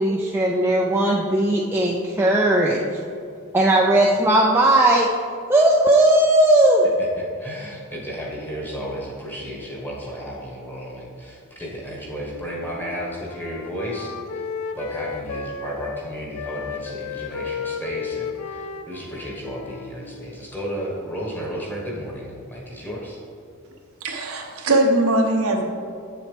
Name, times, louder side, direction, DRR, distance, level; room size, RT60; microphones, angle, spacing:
voice 1, 0.0-2.8 3.5-5.1 5.5-6.9, right 1 dB, 10° right, -3 dB, 0.4 m, -17 dB
voice 2, 7.0-14.4 14.7-23.2, equal, 10° left, -4 dB, 1.3 m, -33 dB
Wind instrument woodwind instrument, 12.3-16.0 16.3-20.4, left 6 dB, 85° left, 0.4 m, -34 dB
voice 3, 24.0-25.6, right 1 dB, 80° right, 2 dB, 0.9 m, -20 dB
7.9 x 7.1 x 3.4 m, 2.3 s
head